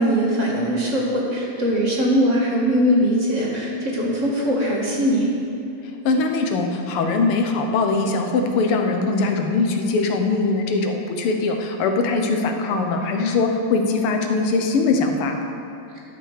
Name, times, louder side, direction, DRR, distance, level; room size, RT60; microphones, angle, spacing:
voice 1, 0.0-5.3, equal, 35° right, -3 dB, 1.8 m, -21 dB
voice 2, 6.0-15.4, left 3 dB, 85° left, 4 dB, 1.9 m, -21 dB
12.0 x 6.8 x 6.5 m, 2.8 s
omnidirectional pair, 2.4 m